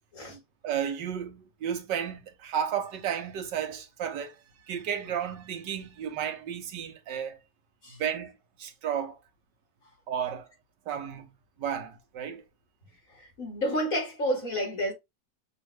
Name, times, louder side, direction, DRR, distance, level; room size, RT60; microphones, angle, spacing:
voice 1, 0.3-4.4 4.7-7.4 7.9-9.2 10.1-10.5 10.9-11.3 11.6-12.4, right 8 dB, 90° right, 1.6 m, -33 dB
voice 2, 13.4-14.9, equal, 50° left, 2.4 m, -29 dB
6.1 x 2.6 x 3.2 m
omnidirectional pair, 1.8 m